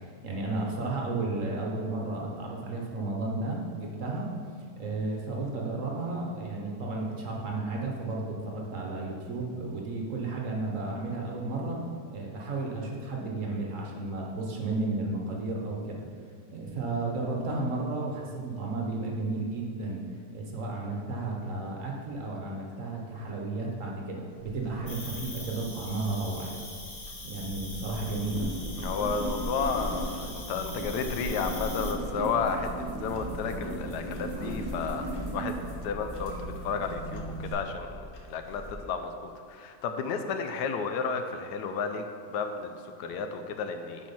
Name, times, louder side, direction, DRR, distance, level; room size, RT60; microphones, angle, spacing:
voice 1, 0.2-4.3 4.8-11.8 12.1-16.0 16.5-20.0 20.3-26.7 27.2-28.5, right 2 dB, 50° right, -1 dB, 1.3 m, -33 dB
Clock, 24.3-38.8, left 1 dB, 55° left, 1.1 m, -47 dB
Cricket, 24.9-31.9, left 2 dB, 30° left, 0.9 m, -43 dB
sound 1, 27.3-37.5, right 1 dB, 15° right, 1.3 m, -36 dB
voice 2, 28.8-44.1, left 5 dB, 80° left, 7 dB, 1.2 m, -32 dB
7.3 x 4.5 x 5.6 m, 2.1 s
omnidirectional pair, 1.8 m